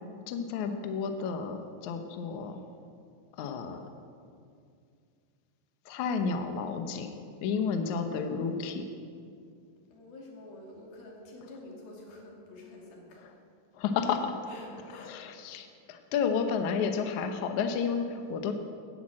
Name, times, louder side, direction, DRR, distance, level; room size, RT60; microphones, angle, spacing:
voice 1, 0.3-2.6 3.4-3.9 5.9-7.1 7.4-8.9 13.7-14.3 15.0-18.5, left 6 dB, 70° left, 6 dB, 2.1 m, -31 dB
voice 2, 9.9-13.4 14.0-14.1 14.5-15.3 15.9-16.0, left 2 dB, 85° left, -1 dB, 4.4 m, -48 dB
14.0 x 10.5 x 8.6 m, 2.3 s
omnidirectional pair, 4.1 m